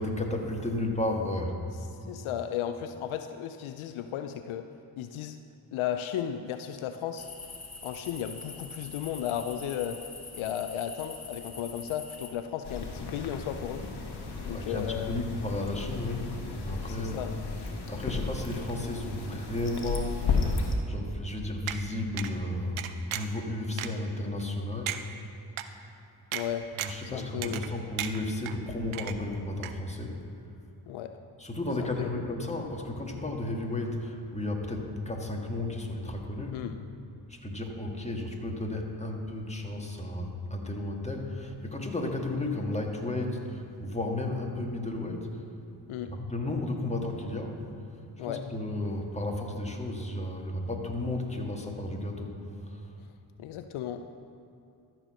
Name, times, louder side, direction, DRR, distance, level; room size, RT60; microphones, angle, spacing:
voice 1, 0.0-1.6 14.3-16.3 16.6-17.3 17.9-22.8 23.1-25.0 26.8-30.2 31.4-36.7 37.3-45.3 46.1-47.6 48.2-52.4 52.7-52.8, left 2 dB, 15° left, 1 dB, 1.7 m, -33 dB
voice 2, 2.1-4.7 5.0-5.4 5.7-7.3 7.8-10.0 10.3-13.9 14.4-15.2 16.9-17.3 26.3-26.7 27.0-27.6 30.9-31.2 31.8-32.1 36.5-36.8 45.9-46.1 48.2-48.5 53.4-54.1, left 10 dB, 80° left, 9 dB, 0.5 m, -34 dB
sound 1, 7.2-12.3, left 4 dB, 30° left, 1.6 m, -44 dB
sound 2, 12.6-20.7, left 4 dB, 55° left, 1.5 m, -34 dB
sound 3, 21.7-21.8 22.2-22.3 22.8-23.4 23.8-23.9 24.4-24.5 24.9-25.0 25.6-25.7 26.3-26.4 26.8-27.0 27.4-27.7 28.0-28.5 28.9-29.4 29.6-29.7, right 12 dB, 85° right, 0.6 m, -34 dB
13.5 x 4.6 x 6.3 m, 2.7 s
supercardioid pair, 40°, 48 cm